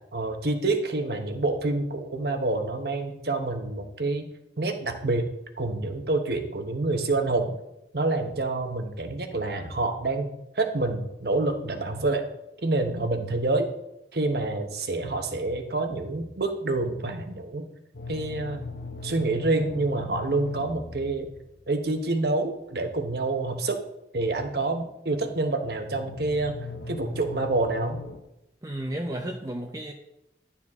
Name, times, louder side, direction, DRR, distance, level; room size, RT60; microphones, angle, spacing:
voice 1, 0.1-4.3 4.6-5.3 5.6-7.5 7.9-10.3 10.5-12.3 12.6-13.7 14.1-17.6 18.1-18.6 19.0-21.3 21.7-23.8 24.1-26.6 26.9-28.0, right 2 dB, 60° right, 6 dB, 1.0 m, -27 dB
sound 1, 17.9-22.1 25.8-28.2, left 3 dB, 65° left, 0.9 m, -39 dB
voice 2, 28.6-29.9, right 1 dB, 20° right, 1 dB, 0.6 m, -33 dB
11.0 x 7.2 x 3.7 m, 0.86 s
head